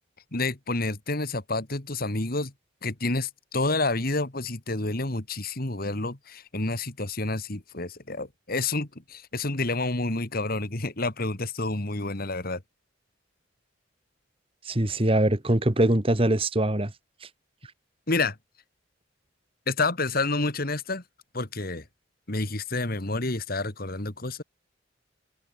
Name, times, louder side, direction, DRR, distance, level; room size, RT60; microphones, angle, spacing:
voice 1, 0.3-2.5 2.8-12.6 18.1-18.4 19.7-21.0 21.3-21.9 22.3-24.4, left 2 dB, 45° left, 2.2 m, -29 dB
voice 2, 14.6-16.9, right 1 dB, 30° right, 1.4 m, -23 dB
head